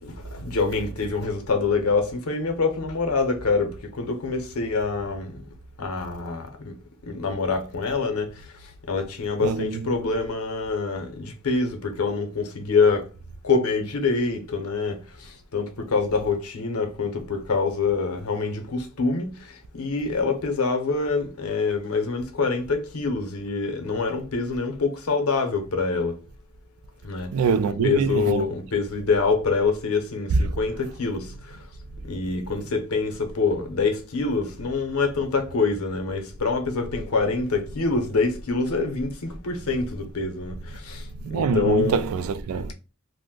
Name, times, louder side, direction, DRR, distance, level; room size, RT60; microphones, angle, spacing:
voice 1, 0.0-5.4 5.8-6.7 7.0-8.4 8.9-13.1 13.4-26.2 27.0-27.3 27.8-31.6 32.0-42.0, left 4 dB, 85° left, 0.7 m, -25 dB
voice 2, 9.4-9.9 27.3-28.4 30.3-30.4 41.1-42.7, right 5 dB, 75° right, 0.3 m, -24 dB
2.5 x 2.1 x 3.6 m
head